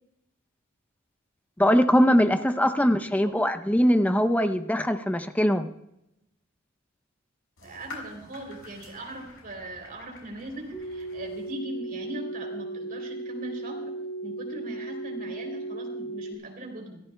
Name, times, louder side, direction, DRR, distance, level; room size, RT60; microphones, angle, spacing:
voice 1, 1.6-5.7, equal, 10° left, 9 dB, 0.7 m, -22 dB
sound 1, 7.6-11.6, left 3 dB, 90° left, 5.9 m, -47 dB
voice 2, 7.6-13.9 14.2-17.0, right 1 dB, 50° right, 1 dB, 3.4 m, -39 dB
sound 2, 10.7-16.3, right 2 dB, 25° left, 3.6 m, -36 dB
24.0 x 14.5 x 2.3 m, 0.83 s
head